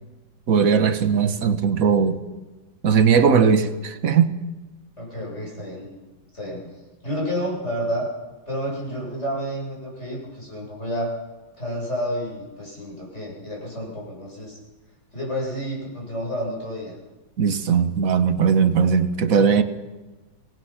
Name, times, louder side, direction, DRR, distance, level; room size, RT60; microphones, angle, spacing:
voice 1, 0.5-2.2 2.8-4.3 17.4-19.6, right 6 dB, 50° right, 1.5 m, -19 dB
voice 2, 5.0-5.9 6.3-6.7 7.0-8.1 8.5-11.1 11.6-14.6 15.1-16.9, equal, 35° left, 7.8 m, -30 dB
25.0 x 19.5 x 5.9 m
omnidirectional pair, 2.1 m